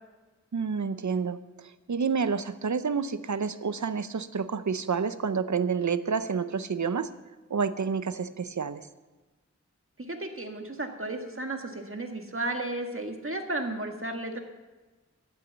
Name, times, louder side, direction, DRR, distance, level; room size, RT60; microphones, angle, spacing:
voice 1, 0.5-7.1 7.5-8.9, right 5 dB, 80° right, 13 dB, 0.7 m, -29 dB
voice 2, 10.0-14.4, right 2 dB, 45° right, 4 dB, 1.8 m, -34 dB
14.0 x 8.4 x 6.9 m, 1.2 s
wide cardioid pair, 45°, 29 cm